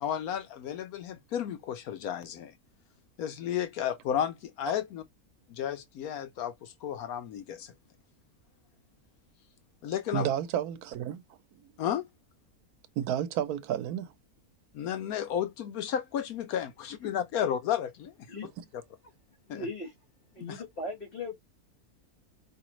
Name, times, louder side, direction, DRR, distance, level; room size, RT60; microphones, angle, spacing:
voice 1, 0.0-2.5 3.2-5.0 5.5-7.7 9.8-10.3 11.8-12.0 14.7-18.1 18.4-18.5 19.5-19.7 20.5-20.6, left 9 dB, 75° left, 1.1 m, -33 dB
voice 2, 10.1-11.2 11.5-11.7 13.0-14.1 18.6-18.7, right 10 dB, 85° right, 1.1 m, -31 dB
voice 3, 19.5-19.9 20.3-21.3, left 2 dB, 35° left, 2.3 m, -38 dB
4.8 x 3.0 x 3.1 m
omnidirectional pair, 1.6 m